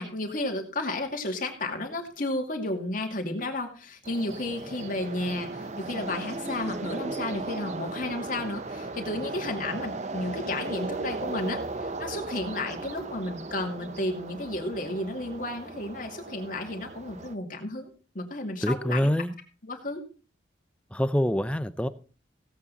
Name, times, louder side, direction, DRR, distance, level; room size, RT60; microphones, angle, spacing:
voice 1, 0.0-19.1 19.6-20.0, left 2 dB, 45° left, 3 dB, 2.4 m, -32 dB
sound 1, 4.0-17.3, right 2 dB, 35° right, 0.8 m, -37 dB
voice 2, 18.6-19.3 20.9-21.9, equal, 5° left, 13 dB, 0.5 m, -25 dB
16.5 x 8.5 x 4.1 m, 0.36 s
head